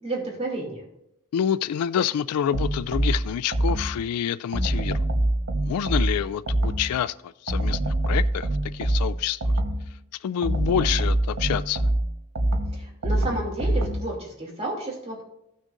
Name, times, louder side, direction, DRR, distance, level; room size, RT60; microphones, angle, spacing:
voice 1, 0.0-0.8 12.7-15.2, right 2 dB, 30° right, 2.7 m, -31 dB
voice 2, 1.3-5.0 5.6-9.5 10.2-11.8, left 9 dB, 80° left, 0.3 m, -27 dB
sound 1, 2.5-4.1 4.5-7.0 7.5-10.0 10.4-14.2, right 1 dB, 90° right, 1.2 m, -25 dB
16.0 x 6.3 x 2.6 m
head